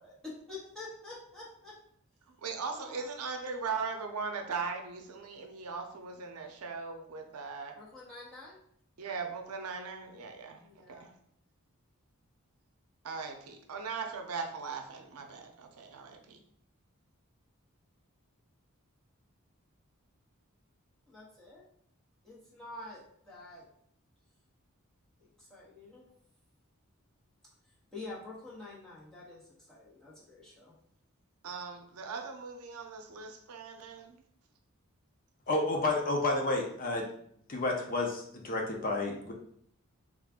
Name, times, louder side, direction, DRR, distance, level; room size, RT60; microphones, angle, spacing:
voice 1, 0.0-1.7 2.7-3.1 7.8-8.6 10.6-11.1 21.1-21.6 22.2-23.6 25.2-26.1 27.9-29.4 29.7-30.7, left 2 dB, 5° left, -7 dB, 1.1 m, -47 dB
voice 2, 2.3-7.8 9.0-10.6 10.9-11.1 13.0-16.4 31.4-34.2, right 5 dB, 85° right, 4 dB, 0.5 m, -39 dB
voice 3, 35.5-37.1 37.5-39.3, left 2 dB, 40° left, 1 dB, 0.5 m, -30 dB
3.5 x 2.4 x 3.5 m, 0.68 s
head